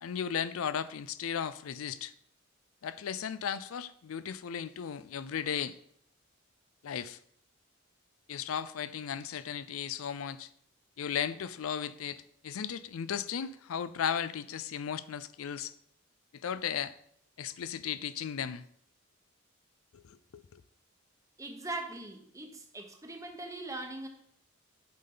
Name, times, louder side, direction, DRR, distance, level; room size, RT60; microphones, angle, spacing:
voice 1, 0.0-2.1 2.8-5.7 6.8-7.2 8.3-10.5 11.0-15.7 16.3-16.9 17.4-18.7 19.9-20.4, left 8 dB, 90° left, 15 dB, 0.4 m, -36 dB
voice 2, 21.4-24.1, right 2 dB, 15° right, 4 dB, 1.0 m, -41 dB
8.7 x 5.7 x 3.8 m, 0.68 s
head